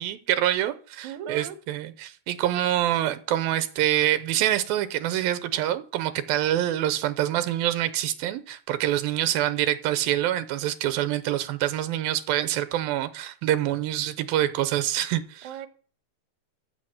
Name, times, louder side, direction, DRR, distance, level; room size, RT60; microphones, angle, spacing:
voice 1, 0.0-15.5, right 12 dB, 85° right, 2.6 m, -26 dB
voice 2, 1.0-1.6 15.4-15.7, right 9 dB, 65° right, 2.2 m, -37 dB
14.5 x 7.8 x 6.4 m
omnidirectional pair, 4.2 m